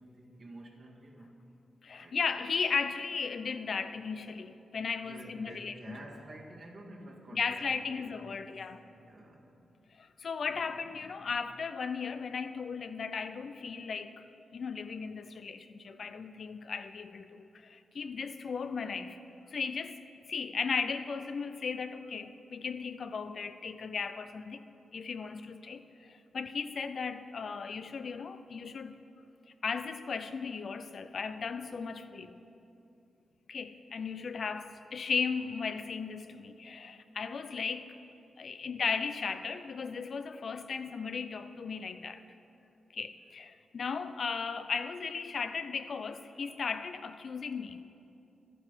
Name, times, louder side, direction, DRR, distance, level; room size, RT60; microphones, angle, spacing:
voice 1, 0.0-1.4 2.0-2.2 5.0-9.6 10.4-11.1 26.0-26.2, right 1 dB, 55° right, 2.1 m, -50 dB
voice 2, 1.8-6.0 7.3-8.8 10.0-14.2 14.5-19.2 19.5-20.0 20.3-24.6 24.9-29.0 29.6-32.4 33.5-37.9 38.4-42.2 42.9-47.8, left 5 dB, 60° left, 0.5 m, -36 dB
11.5 x 9.2 x 5.7 m
cardioid pair, 70°, 0 cm